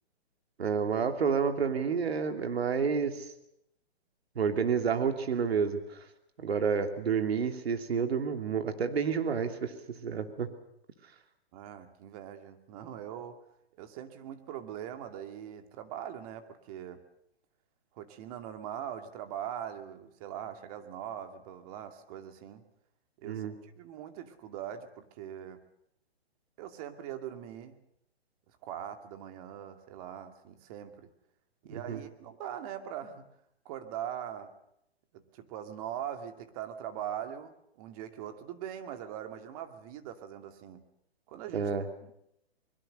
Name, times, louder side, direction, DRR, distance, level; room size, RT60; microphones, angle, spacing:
voice 1, 0.6-3.3 4.3-6.0 6.4-10.5 23.2-23.5 31.7-32.0 41.5-41.8, right 6 dB, 70° right, 7 dB, 2.9 m, -30 dB
voice 2, 11.5-13.4 13.8-17.0 17.9-22.6 23.2-25.6 26.6-27.8 28.6-31.1 31.6-33.3 33.6-34.5 35.1-40.8 41.3-41.7 42.0-42.1, right 10 dB, 35° right, 7 dB, 2.4 m, -41 dB
24.0 x 22.0 x 6.7 m, 0.78 s
hypercardioid pair, 140°, 32 cm